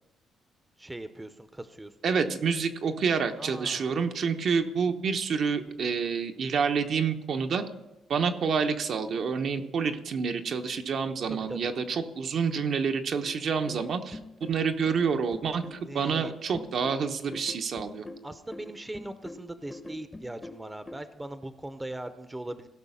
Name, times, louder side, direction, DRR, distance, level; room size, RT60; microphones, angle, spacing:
voice 1, 0.8-1.9 3.4-3.9 11.3-11.6 15.9-16.3 18.2-22.7, right 1 dB, 15° right, 10 dB, 0.7 m, -40 dB
voice 2, 2.0-7.6 8.1-18.0, right 6 dB, 60° right, 5 dB, 0.9 m, -28 dB
sound 1, 13.3-20.9, left 1 dB, 15° left, 0.9 m, -44 dB
16.5 x 5.7 x 5.6 m, 0.97 s
cardioid pair, 90°, 0 cm